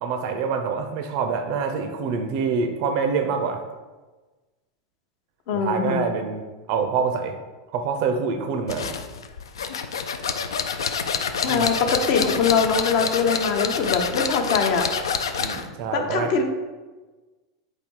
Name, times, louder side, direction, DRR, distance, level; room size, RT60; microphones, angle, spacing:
voice 1, 0.0-3.6 5.5-7.4 7.7-8.9 11.5-11.7 15.4-16.3, right 5 dB, 55° right, 5 dB, 0.5 m, -26 dB
voice 2, 5.5-6.1 11.4-14.8 15.9-16.4, left 5 dB, 55° left, 4 dB, 0.7 m, -22 dB
sound 1, 8.7-15.7, left 6 dB, 80° left, 0.3 m, -27 dB
4.1 x 2.7 x 4.6 m, 1.2 s
hypercardioid pair, 95°, 2 cm